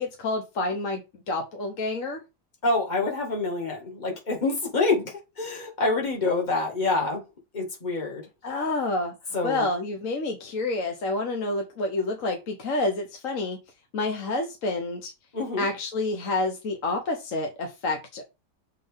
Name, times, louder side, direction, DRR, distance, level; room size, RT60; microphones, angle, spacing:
voice 1, 0.0-2.2 8.4-9.1 9.4-13.6 13.9-15.1 15.6-18.2, left 2 dB, 55° left, 1.4 m, -28 dB
voice 2, 2.6-7.2 7.5-8.3 9.3-9.7 15.3-15.7, left 3 dB, 25° left, 2.0 m, -26 dB
7.3 x 4.0 x 3.5 m
omnidirectional pair, 1.8 m